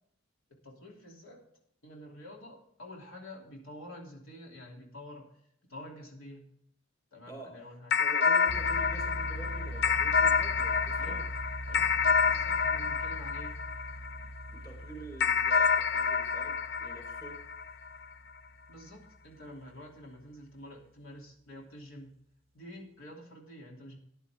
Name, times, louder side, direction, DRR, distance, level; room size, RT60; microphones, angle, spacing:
voice 1, 0.6-1.4 1.8-5.3 5.7-6.4 7.1-8.0 10.9-11.2 11.6-13.6 18.7-22.1 22.5-24.0, left 1 dB, 80° left, -1 dB, 3.0 m, -48 dB
voice 2, 7.3-11.3 14.5-17.4, right 1 dB, 20° left, 2 dB, 3.9 m, -47 dB
sound 1, 7.9-14.5 15.2-18.0, left 6 dB, 55° left, 0.5 m, -28 dB
sound 2, 8.5-19.3, right 1 dB, 30° right, 0.7 m, -42 dB
14.5 x 10.0 x 3.6 m, 0.69 s
head